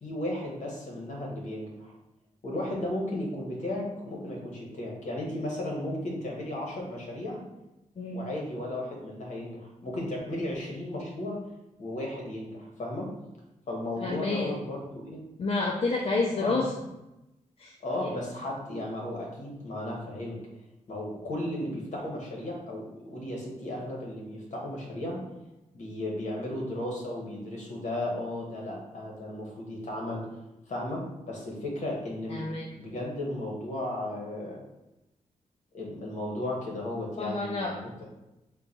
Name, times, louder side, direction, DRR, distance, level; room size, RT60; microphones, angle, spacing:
voice 1, 0.0-1.9 2.4-7.4 8.1-11.4 11.8-13.1 13.7-15.2 16.4-16.6 17.8-20.4 20.9-25.2 25.7-30.3 30.7-32.4 32.7-34.6 35.7-38.0, left 1 dB, 65° left, -2 dB, 1.2 m, -35 dB
voice 2, 14.0-14.5 15.4-16.9 17.6-18.1 32.3-32.7 37.2-38.0, left 3 dB, 45° left, -1 dB, 0.5 m, -30 dB
3.8 x 2.3 x 4.1 m, 0.96 s
cardioid pair, 95°, 14 cm